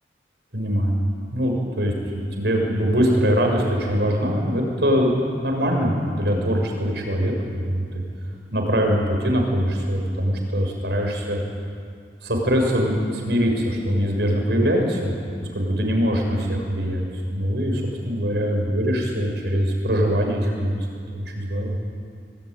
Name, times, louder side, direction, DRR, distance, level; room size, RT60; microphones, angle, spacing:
voice 1, 0.5-1.0 1.3-8.0 8.5-11.4 12.2-15.1 15.5-20.8 21.1-21.8, equal, 70° right, 1 dB, 6.8 m, -22 dB
25.5 x 21.0 x 9.9 m, 2.2 s
head